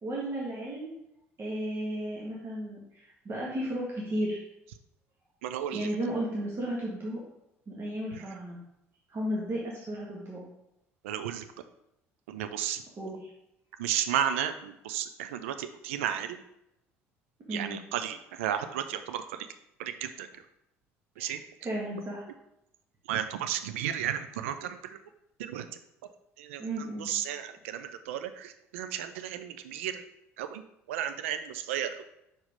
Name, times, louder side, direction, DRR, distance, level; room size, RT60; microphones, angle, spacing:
voice 1, 0.0-0.9 1.4-4.4 5.7-7.2 7.7-8.6 9.1-10.4 13.0-13.3 17.5-17.8 21.2-22.3 26.6-27.1, right 1 dB, 35° right, -4 dB, 1.7 m, -34 dB
voice 2, 5.4-5.9 11.0-11.4 12.3-12.8 13.8-16.4 17.5-19.5 19.8-20.3 21.2-21.4 23.1-25.0 25.4-25.7 26.4-26.6 27.0-30.0 30.4-30.6 30.9-32.0, right 10 dB, 75° right, 9 dB, 0.4 m, -33 dB
5.4 x 4.9 x 5.1 m, 0.83 s
hypercardioid pair, 60°, 7 cm